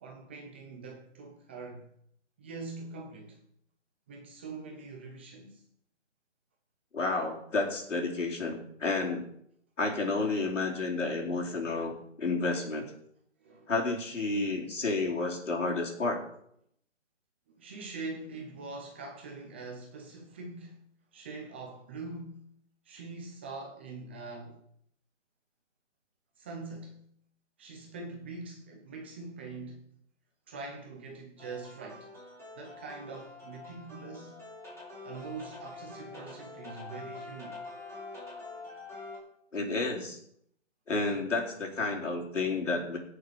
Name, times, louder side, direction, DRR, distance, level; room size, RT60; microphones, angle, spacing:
voice 1, 0.0-1.9 2.4-3.4 4.1-5.6 13.4-13.7 17.6-20.8 21.1-22.4 22.8-24.6 26.4-27.0 27.6-29.8 30.5-32.1 32.6-34.4 35.0-37.6, right 3 dB, 10° right, 0.6 m, -43 dB
voice 2, 6.9-9.2 9.8-12.9 13.7-16.2 39.5-40.2 40.9-43.0, left 3 dB, 75° left, 4.2 m, -31 dB
sound 1, 31.4-39.2, left 3 dB, 5° left, 3.6 m, -46 dB
17.5 x 6.8 x 5.1 m
hypercardioid pair, 155°, 37 cm